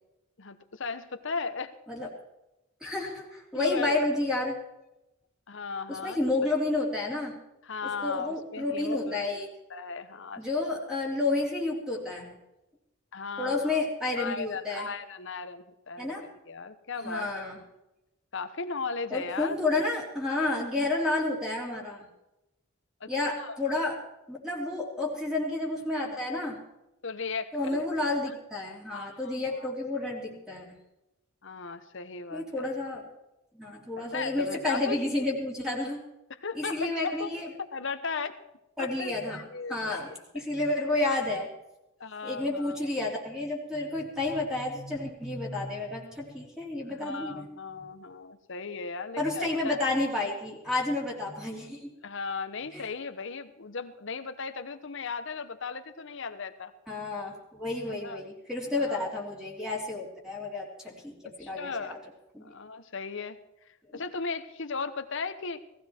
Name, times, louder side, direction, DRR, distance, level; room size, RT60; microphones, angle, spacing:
voice 1, 0.4-1.7 3.5-4.0 5.5-6.2 7.6-9.2 9.7-10.4 13.1-13.8 14.2-17.4 18.3-19.6 23.0-23.1 23.4-23.6 27.0-28.1 28.9-29.7 31.4-32.7 34.0-35.1 36.3-37.3 37.7-38.4 38.8-40.4 42.0-42.8 46.9-49.8 52.0-56.7 57.9-58.2 58.7-59.0 61.4-62.0 62.4-63.4 63.7-65.6, left 4 dB, 65° left, 10 dB, 1.1 m, -37 dB
voice 2, 2.8-4.6 5.9-7.4 8.0-9.5 10.4-12.3 13.4-14.9 16.0-16.2 17.0-17.6 19.1-22.1 23.1-24.0 24.3-26.6 27.5-30.8 32.3-33.1 33.5-36.0 36.6-37.5 38.8-39.4 39.7-41.5 42.2-47.5 49.2-51.9 52.7-52.9 56.9-62.0 62.3-62.4 63.9-64.0, left 2 dB, 5° right, -2 dB, 3.2 m, -30 dB
18.0 x 15.0 x 4.5 m, 0.93 s
head